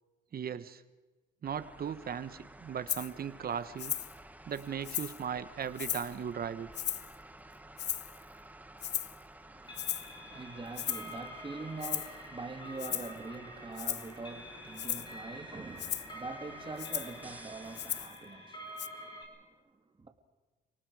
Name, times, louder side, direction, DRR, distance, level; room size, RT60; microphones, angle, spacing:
voice 1, 0.3-0.8 1.4-3.9 4.5-6.7, right 8 dB, 50° right, 1.2 m, -37 dB
sound 1, 1.4-18.1, right 1 dB, 10° right, 1.3 m, -53 dB
Rattle (instrument), 2.9-3.1 3.8-4.1 4.6-5.2 5.8-6.2 6.7-7.2 7.8-8.2 8.8-9.2 9.8-10.1 10.8-11.1 11.8-12.1 12.8-13.2 13.8-14.1 14.8-15.1 15.8-16.1 16.8-17.2 17.8-18.2 18.8-18.9, left 10 dB, 60° left, 0.8 m, -36 dB
voice 2, 9.4-20.1, right 3 dB, 25° right, 2.7 m, -44 dB
sound 2, 9.6-19.2, equal, 25° left, 5.3 m, -48 dB
29.5 x 18.5 x 4.9 m
cardioid pair, 90°, 20 cm